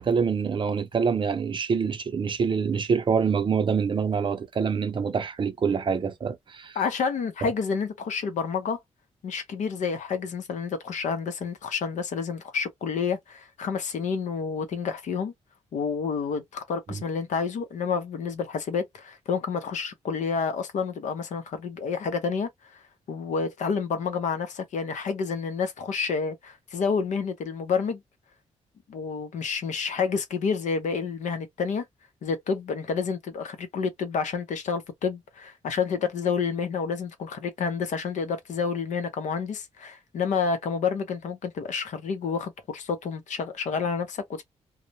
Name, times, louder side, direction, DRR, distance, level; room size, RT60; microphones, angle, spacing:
voice 1, 0.0-6.8 16.9-17.0, right 6 dB, 40° right, 0.5 m, -26 dB
voice 2, 6.8-8.8 9.2-15.3 15.7-22.8 23.1-28.0 28.9-31.8 32.2-44.4, left 5 dB, 80° left, 0.7 m, -29 dB
2.3 x 2.0 x 2.7 m
wide cardioid pair, 125°, 12 cm